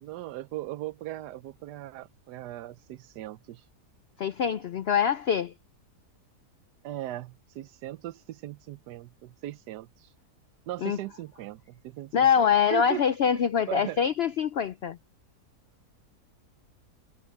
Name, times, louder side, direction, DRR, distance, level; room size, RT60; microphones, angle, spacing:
voice 1, 0.0-3.7 6.8-10.2 10.7-13.0 13.3-14.0, right 14 dB, 80° right, 1.2 m, -38 dB
voice 2, 4.2-5.5 10.8-11.0 12.1-15.0, left 8 dB, 80° left, 0.5 m, -24 dB
omnidirectional pair, 1.7 m